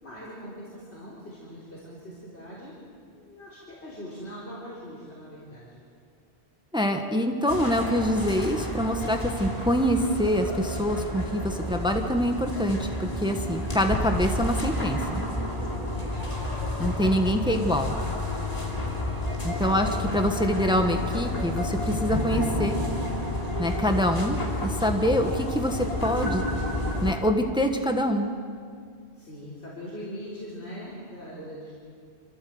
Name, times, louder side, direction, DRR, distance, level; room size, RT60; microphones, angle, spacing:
voice 1, 0.0-2.7 3.1-5.8 16.2-17.8 29.1-31.8, equal, 90° left, -7 dB, 4.2 m, -42 dB
voice 2, 6.7-15.2 16.8-18.0 19.4-22.8 23.6-26.4 27.0-28.3, equal, 5° right, 4 dB, 1.2 m, -25 dB
sound 1, 7.5-27.1, left 1 dB, 35° left, 3.0 m, -30 dB
26.5 x 14.5 x 7.8 m, 2.2 s
omnidirectional pair, 1.1 m